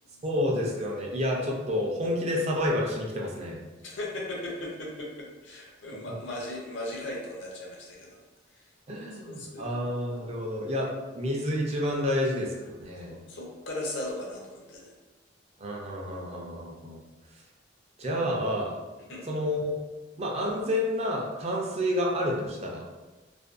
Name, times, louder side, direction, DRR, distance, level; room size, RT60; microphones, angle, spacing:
voice 1, 0.2-3.6 8.9-13.2 15.6-17.0 18.0-18.7 19.3-19.8 20.2-22.8, left 1 dB, 35° right, -2 dB, 0.4 m, -29 dB
voice 2, 3.8-8.2 8.5-9.7 13.0-14.9 19.1-19.3, left 1 dB, 70° left, -2 dB, 0.6 m, -38 dB
2.5 x 2.2 x 2.4 m, 1.2 s
head